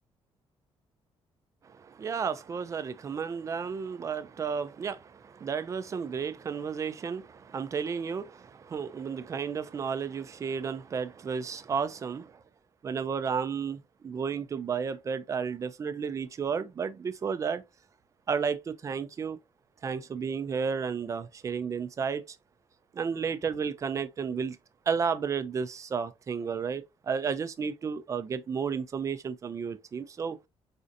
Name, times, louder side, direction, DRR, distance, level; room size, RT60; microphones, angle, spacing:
voice 1, 1.6-12.4 12.8-17.6 18.3-19.4 19.8-22.4 22.9-24.6 24.9-30.4, right 6 dB, 30° right, 0.4 m, -32 dB
4.2 x 2.5 x 2.6 m
cardioid pair, 145°, 11 cm